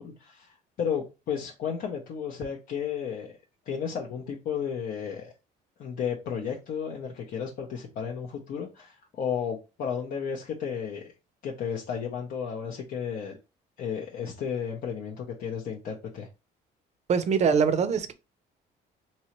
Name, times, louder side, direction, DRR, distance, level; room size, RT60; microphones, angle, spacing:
voice 1, 0.0-3.3 3.7-5.3 5.8-11.1 11.4-13.4 13.8-16.3, left 7 dB, 60° left, 0.7 m, -33 dB
voice 2, 17.1-18.1, right 6 dB, 40° right, 0.5 m, -23 dB
3.0 x 2.8 x 2.9 m
cardioid pair, 110°, 17 cm